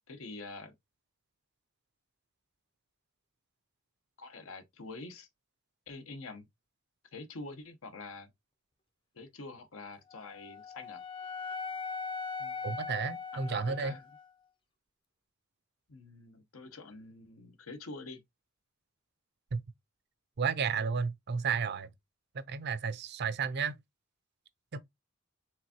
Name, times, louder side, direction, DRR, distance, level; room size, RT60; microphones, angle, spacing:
voice 1, 0.1-0.7 4.2-5.3 5.9-6.5 7.1-8.3 9.1-11.0 12.4-12.6 13.3-14.0 15.9-18.2, left 3 dB, 80° left, 0.9 m, -46 dB
Wind instrument woodwind instrument, 10.1-14.3, left 5 dB, 25° left, 0.6 m, -40 dB
voice 2, 12.6-13.9 19.5-19.6 20.4-21.9 22.3-23.7 24.7-24.8, right 5 dB, 55° right, 0.5 m, -32 dB
4.7 x 3.5 x 2.8 m
head